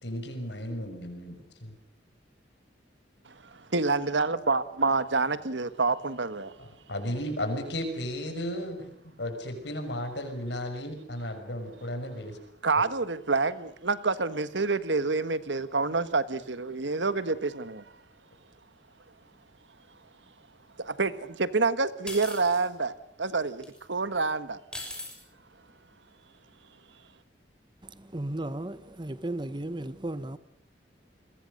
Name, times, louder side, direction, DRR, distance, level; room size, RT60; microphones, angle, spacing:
voice 1, 0.0-1.7 6.6-12.4, left 1 dB, 70° left, 5.9 m, -34 dB
voice 2, 3.2-6.5 12.6-17.8 20.8-24.6, right 3 dB, 75° right, 1.5 m, -28 dB
sound 1, 22.1-22.6 23.6-23.8 24.7-25.2, left 1 dB, 5° left, 6.3 m, -39 dB
voice 3, 27.8-30.4, right 1 dB, 25° right, 1.0 m, -35 dB
29.5 x 22.0 x 6.7 m
head